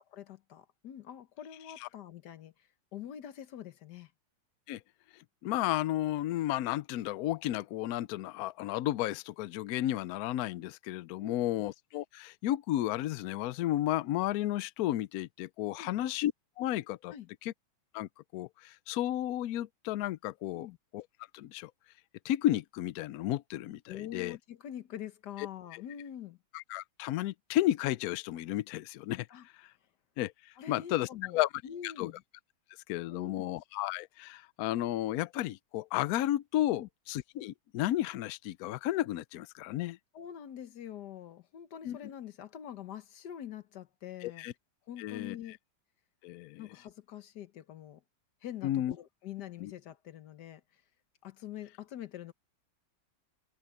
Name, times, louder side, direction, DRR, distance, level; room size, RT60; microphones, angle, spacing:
voice 1, 0.1-4.1 11.2-11.4 15.8-15.9 17.1-17.3 20.5-20.8 23.9-26.4 29.3-29.5 30.6-32.2 33.1-33.5 36.7-36.9 40.1-44.5 44.9-45.6 46.6-48.0 48.4-50.6 51.2-52.3, left 10 dB, 60° left, 1.5 m, -45 dB
voice 2, 5.1-16.3 16.6-17.1 17.4-17.5 17.9-20.7 20.9-21.0 21.3-21.7 22.2-24.4 25.7-25.8 26.5-29.7 30.2-31.5 31.8-32.1 32.9-40.0 41.8-42.0 44.2-44.5 45.0-45.4 46.2-46.6 48.6-48.9 49.6-49.7, left 14 dB, 85° left, 0.8 m, -33 dB
omnidirectional pair, 2.2 m